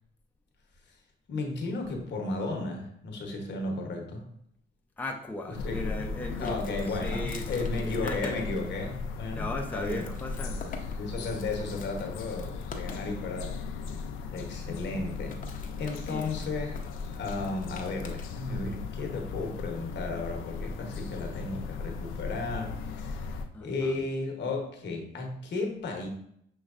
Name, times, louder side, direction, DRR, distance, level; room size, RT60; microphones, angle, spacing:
voice 1, 1.3-4.3 5.5-6.0 6.4-10.1 10.9-13.6 14.3-15.4 15.8-23.3 23.6-26.1, left 3 dB, 65° left, 2 dB, 1.0 m, -34 dB
voice 2, 5.0-8.4 9.3-10.8 16.1-16.3 23.5-24.0, left 1 dB, 10° left, 1 dB, 0.6 m, -37 dB
sound 1, 5.5-23.5, left 4 dB, 90° left, 0.5 m, -37 dB
sound 2, 6.3-8.6 9.2-9.3 9.7-13.2 15.1-18.3, left 5 dB, 45° left, 0.7 m, -45 dB
6.3 x 3.0 x 2.5 m, 0.71 s
cardioid pair, 90°, 20 cm